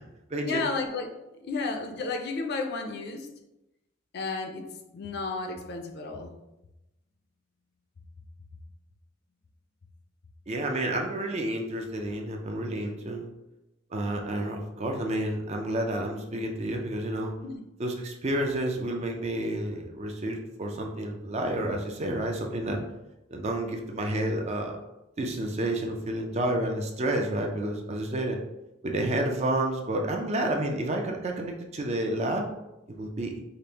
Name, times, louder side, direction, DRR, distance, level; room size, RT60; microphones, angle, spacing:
voice 1, 0.4-1.1 1.4-3.3 4.1-6.3 17.4-17.6, left 3 dB, 55° left, 5 dB, 0.4 m, -32 dB
voice 2, 10.5-13.3 13.9-17.3 17.8-22.8 23.3-24.8 25.2-28.4 28.8-32.5 32.9-33.3, right 1 dB, 35° right, 2 dB, 0.4 m, -30 dB
5.0 x 2.0 x 2.8 m, 0.94 s
head